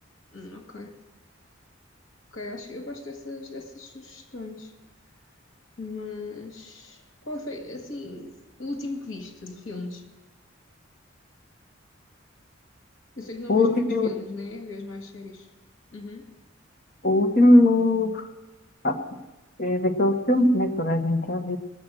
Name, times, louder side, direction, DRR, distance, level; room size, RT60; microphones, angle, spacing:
voice 1, 0.3-1.0 2.3-4.7 5.8-10.0 13.2-15.5 15.9-16.3, left 2 dB, 85° left, 4 dB, 1.9 m, -37 dB
voice 2, 13.5-14.1 17.0-18.3 18.8-19.0 19.6-21.6, left 1 dB, 50° left, 4 dB, 1.3 m, -20 dB
21.0 x 7.6 x 6.3 m, 1.1 s
head